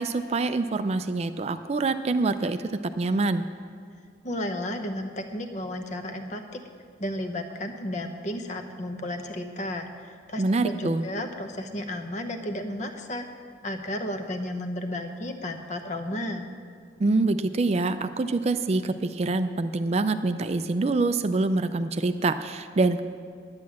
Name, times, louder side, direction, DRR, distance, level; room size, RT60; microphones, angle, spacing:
voice 1, 0.0-2.6 3.0-3.5 10.4-11.0 17.0-23.0, right 3 dB, 35° right, 10 dB, 0.3 m, -25 dB
voice 2, 4.2-6.6 7.0-16.5, left 1 dB, 40° left, 6 dB, 0.9 m, -33 dB
10.5 x 9.6 x 7.3 m, 2.1 s
head